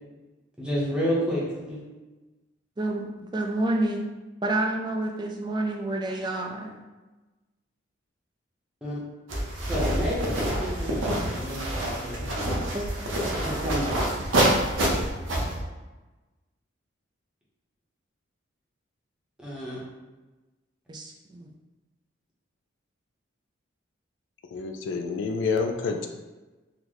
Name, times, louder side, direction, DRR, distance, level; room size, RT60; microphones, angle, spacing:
voice 1, 0.6-1.8 8.8-9.0 9.7-12.3 13.4-13.9 19.4-19.8, equal, 5° right, -6 dB, 0.7 m, -30 dB
voice 2, 2.8-4.0 4.4-6.8 12.7-12.9 20.9-21.5, right 2 dB, 20° right, 2 dB, 0.3 m, -29 dB
sound 1, 9.3-15.6, right 1 dB, 70° right, 0.6 m, -27 dB
voice 3, 24.5-26.1, left 4 dB, 65° left, 5 dB, 0.3 m, -28 dB
3.8 x 2.1 x 3.0 m, 1.2 s
head